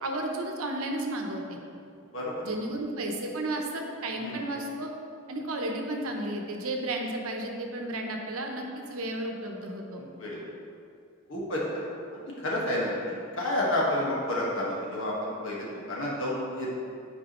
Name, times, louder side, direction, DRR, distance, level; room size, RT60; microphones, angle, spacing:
voice 1, 0.0-1.6 2.4-4.9 5.3-10.0, right 1 dB, 75° right, 2 dB, 0.8 m, -33 dB
voice 2, 10.0-10.5 11.3-11.8 12.1-16.7, left 1 dB, 60° left, -5 dB, 1.5 m, -30 dB
9.4 x 4.8 x 3.0 m, 2.5 s
head